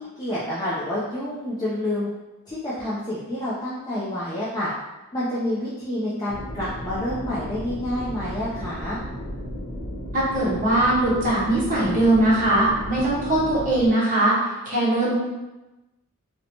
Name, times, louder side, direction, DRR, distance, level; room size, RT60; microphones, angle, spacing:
voice 1, 0.0-2.1 2.5-4.7 5.1-9.0, left 1 dB, 15° left, -9 dB, 0.4 m, -28 dB
sound 1, 6.3-13.9, equal, 85° left, 0.6 m, -34 dB
voice 2, 10.1-14.3 14.7-15.1, right 1 dB, 35° right, -6 dB, 0.8 m, -20 dB
2.7 x 2.1 x 2.8 m, 1.0 s
head